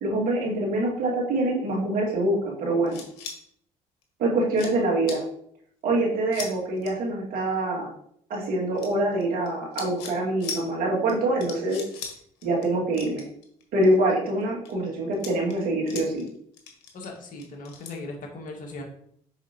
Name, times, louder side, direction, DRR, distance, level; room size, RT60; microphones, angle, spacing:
voice 1, 0.0-3.0 4.2-5.2 5.8-7.9 8.3-11.8 12.4-13.2 13.7-16.3, right 1 dB, 70° right, -3 dB, 2.3 m, -25 dB
sound 1, 2.9-3.4 4.0-4.1 4.5-4.7 5.1-5.2 6.3-6.5 6.8-6.9 8.8-9.5 9.7-10.1 10.4-10.6 11.1-11.2 11.4-12.1 12.4-12.7 12.9-13.9 14.4-14.7 15.1-16.3 16.5-17.9, left 5 dB, 90° left, 1.2 m, -38 dB
voice 2, 16.9-18.8, left 2 dB, 60° left, 1 dB, 1.9 m, -38 dB
7.0 x 5.1 x 3.0 m, 0.66 s
supercardioid pair, 65°, 16 cm